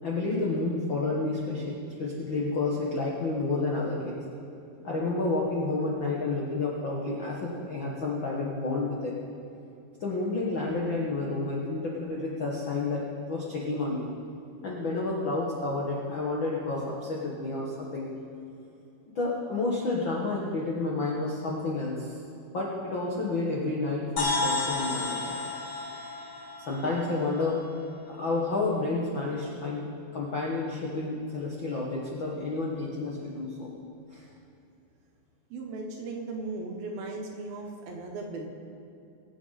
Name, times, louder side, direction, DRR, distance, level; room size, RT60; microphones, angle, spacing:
voice 1, 0.0-4.1 4.8-9.1 10.0-13.0 13.3-14.1 14.6-18.1 19.1-22.1 22.5-25.3 26.6-27.6 28.1-29.8 30.1-33.7 34.1-34.2, left 3 dB, 80° left, -4 dB, 1.0 m, -30 dB
sound 1, 24.2-27.9, left 3 dB, 55° left, 2.8 m, -32 dB
voice 2, 35.5-38.5, right 3 dB, 70° right, 1 dB, 3.0 m, -37 dB
22.0 x 8.4 x 4.1 m, 2.6 s
omnidirectional pair, 4.5 m